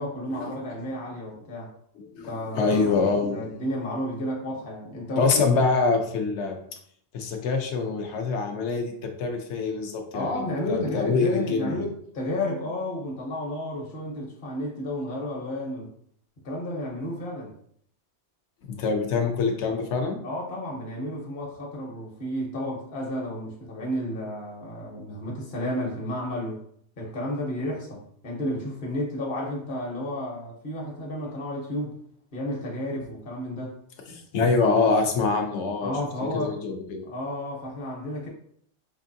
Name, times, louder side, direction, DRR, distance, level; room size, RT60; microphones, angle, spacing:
voice 1, 0.0-1.7 2.3-3.0 3.3-5.5 10.1-15.9 16.4-17.5 20.2-26.6 27.0-32.0 32.3-33.7 35.8-36.6 37.1-38.3, left 1 dB, 50° left, -3 dB, 1.0 m, -32 dB
voice 2, 2.0-3.4 5.2-6.6 7.1-10.4 10.7-11.8 18.7-20.2 34.1-35.9 36.3-37.1, left 4 dB, 80° left, 4 dB, 1.0 m, -25 dB
4.6 x 2.5 x 2.6 m, 0.65 s
omnidirectional pair, 1.2 m